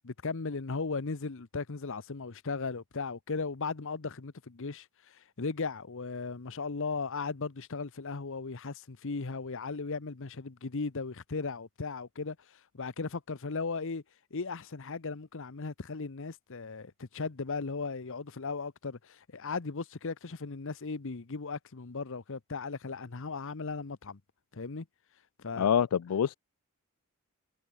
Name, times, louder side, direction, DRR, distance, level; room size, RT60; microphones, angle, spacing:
voice 1, 0.0-12.4 12.7-14.0 14.3-24.2 24.5-24.9 25.4-25.7, left 4 dB, 60° left, 0.9 m, -37 dB
voice 2, 25.6-26.3, left 8 dB, 90° left, 0.4 m, -26 dB
head